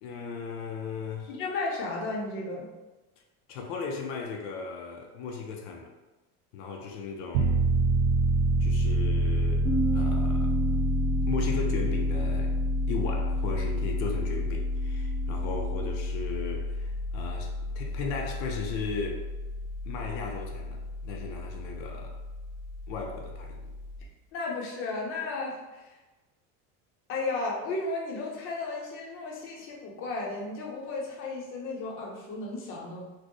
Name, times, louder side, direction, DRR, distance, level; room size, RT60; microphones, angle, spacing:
voice 1, 0.0-1.3 3.5-5.9 6.5-7.6 8.6-9.7 9.9-10.6 11.3-12.6 12.9-19.3 19.9-22.2 22.9-23.7, left 5 dB, 75° left, 2 dB, 0.6 m, -36 dB
voice 2, 1.3-2.7 24.3-25.9 27.1-33.0, left 3 dB, 35° left, -2 dB, 0.7 m, -34 dB
Piano, 7.4-24.0, equal, 90° right, 0.5 m, -29 dB
Bass guitar, 9.6-15.9, right 5 dB, ahead, 0.8 m, -35 dB
4.3 x 2.1 x 3.0 m, 1.1 s
cardioid pair, 180°, 36 cm